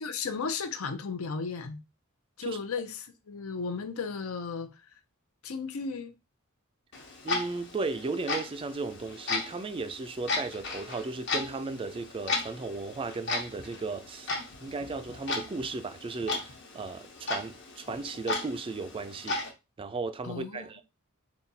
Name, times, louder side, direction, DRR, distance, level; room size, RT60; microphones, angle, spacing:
voice 1, 0.0-1.8 2.4-4.7 5.4-6.1 20.2-20.7, left 5 dB, 85° left, 0.6 m, -35 dB
Clock, 6.9-19.5, left 3 dB, 60° left, 1.0 m, -36 dB
voice 2, 7.2-14.4 14.6-19.4 19.8-20.8, right 3 dB, 25° right, 0.3 m, -35 dB
4.0 x 2.3 x 4.1 m
head